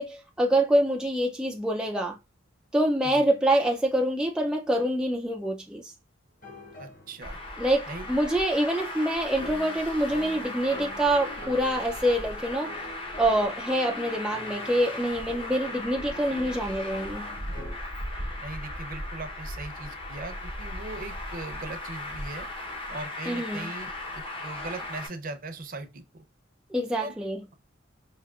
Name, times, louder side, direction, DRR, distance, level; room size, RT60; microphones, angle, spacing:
voice 1, 0.0-2.2 2.7-5.9 7.6-12.7 13.2-17.2 23.3-23.7 26.7-27.4, right 1 dB, 5° right, 0.3 m, -26 dB
sound 1, 6.4-7.5 8.2-8.8 9.3-17.7, left 1 dB, 45° left, 1.6 m, -45 dB
voice 2, 6.8-7.4 7.9-8.1 18.4-22.5 22.9-26.2 27.0-27.2, right 2 dB, 45° right, 0.6 m, -39 dB
Traffic noise roadway noise, 7.2-25.1, left 1 dB, 25° left, 0.7 m, -37 dB
4.8 x 2.8 x 2.3 m
head